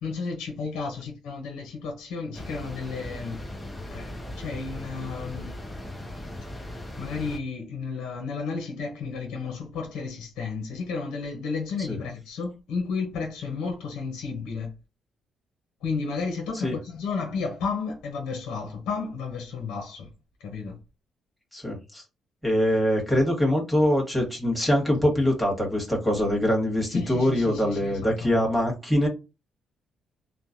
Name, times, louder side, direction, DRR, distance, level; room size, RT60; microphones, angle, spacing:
voice 1, 0.0-3.4 3.7-5.5 7.0-14.7 15.8-20.1 20.4-20.8 26.9-28.7, left 4 dB, 85° left, 0.7 m, -32 dB
sound 1, 2.3-7.4, left 1 dB, 10° left, 0.7 m, -38 dB
voice 2, 21.5-22.0 22.4-29.1, equal, 5° right, 1.4 m, -23 dB
3.0 x 2.1 x 2.6 m
cardioid pair, 90°, 0 cm